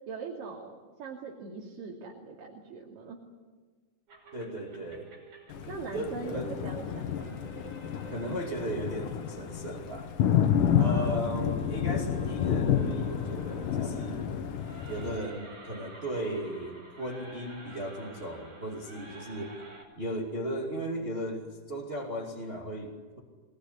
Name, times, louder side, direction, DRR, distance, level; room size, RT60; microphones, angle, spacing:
voice 1, 0.1-3.2 5.7-7.4 10.8-11.6, right 4 dB, 80° right, -2 dB, 4.5 m, -41 dB
sound 1, 4.1-19.8, right 2 dB, 60° right, 7.4 m, -51 dB
voice 2, 4.3-5.1 5.9-6.5 8.1-10.1 10.8-14.3 14.9-19.5 20.0-23.2, right 1 dB, 20° right, -1 dB, 2.6 m, -36 dB
Thunder, 5.5-15.2, left 9 dB, 75° left, 2.9 m, -30 dB
24.0 x 20.0 x 9.9 m, 1.4 s
omnidirectional pair, 3.9 m